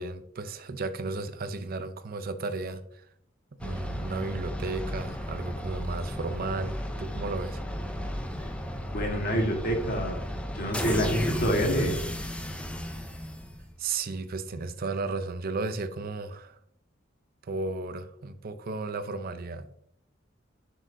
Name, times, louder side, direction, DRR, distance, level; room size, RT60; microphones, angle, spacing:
voice 1, 0.0-3.0 3.5-7.6 13.8-16.6 17.4-19.7, right 3 dB, 50° right, 0.5 m, -34 dB
sound 1, 3.6-13.9, equal, 5° left, 0.5 m, -34 dB
voice 2, 8.9-10.2 10.5-12.0, equal, 50° left, 1.6 m, -27 dB
7.6 x 6.4 x 2.6 m
head